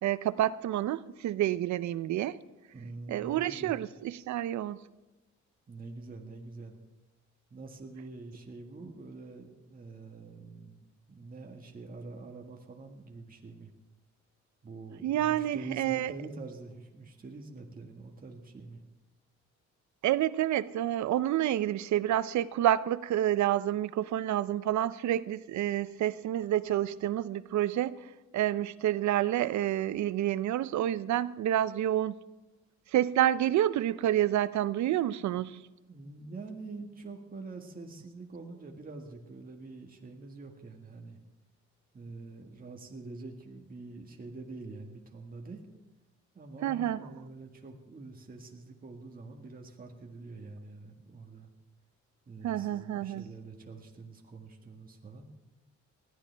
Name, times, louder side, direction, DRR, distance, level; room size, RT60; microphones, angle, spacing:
voice 1, 0.0-2.4 3.1-4.8 15.0-16.1 20.0-27.9 28.3-32.1 32.9-35.6 46.6-47.0 52.4-53.2, right 12 dB, 70° right, 0.6 m, -28 dB
voice 2, 2.7-3.7 5.7-6.8 7.5-13.7 14.6-18.8 35.9-41.2 41.9-45.6 46.3-51.5 52.3-55.3, right 3 dB, 30° right, 1.8 m, -45 dB
20.0 x 13.0 x 3.4 m
cardioid pair, 90°, 30 cm